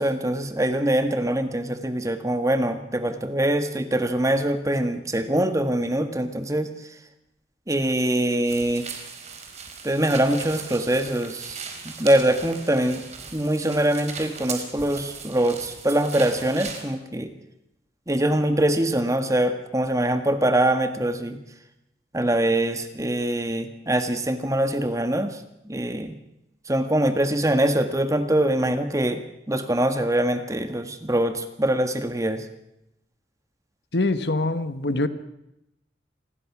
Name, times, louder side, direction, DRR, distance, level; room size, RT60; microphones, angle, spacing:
voice 1, 0.0-6.7 7.7-8.9 9.8-13.0 13.3-17.3 18.1-21.4 22.1-26.2 26.7-32.5, right 1 dB, 15° right, 8 dB, 1.7 m, -23 dB
sound 1, 8.4-16.9, right 5 dB, 35° right, 4.4 m, -39 dB
voice 2, 33.9-35.1, left 2 dB, 60° left, 12 dB, 1.4 m, -24 dB
27.5 x 21.0 x 6.1 m, 0.87 s
head